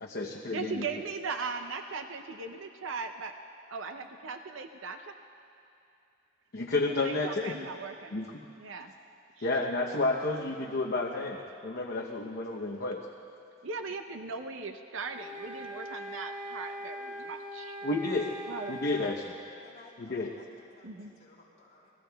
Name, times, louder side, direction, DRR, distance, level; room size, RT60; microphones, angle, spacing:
voice 1, 0.0-0.8 6.5-7.5 8.1-8.3 9.4-13.1 17.8-18.3 18.7-19.4 20.0-20.3, left 2 dB, 55° left, -1 dB, 0.8 m, -31 dB
voice 2, 0.5-3.3 3.7-5.1 6.9-8.2 8.6-8.9 9.4-9.5 13.6-17.8 18.5-18.8 20.8-21.1, right 4 dB, 75° right, 6 dB, 0.7 m, -38 dB
sound 1, 15.0-19.2, equal, 40° right, 2.6 m, -41 dB
voice 3, 19.6-21.9, left 2 dB, 35° left, -6 dB, 3.5 m, -57 dB
27.0 x 20.5 x 2.3 m, 2.7 s
head